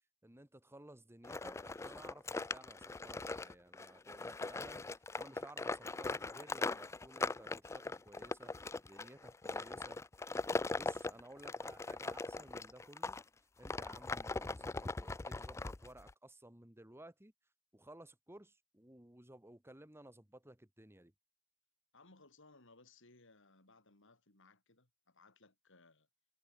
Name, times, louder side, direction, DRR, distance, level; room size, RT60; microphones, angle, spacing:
voice 1, 0.2-10.0 10.7-13.2 13.6-17.3 17.7-21.1, right 1 dB, 10° right, 1.8 m, -57 dB
sound 1, 1.2-13.2 13.6-16.1, left 3 dB, 15° left, 0.3 m, -40 dB
voice 2, 21.9-26.1, left 3 dB, 60° left, 4.0 m, -64 dB
head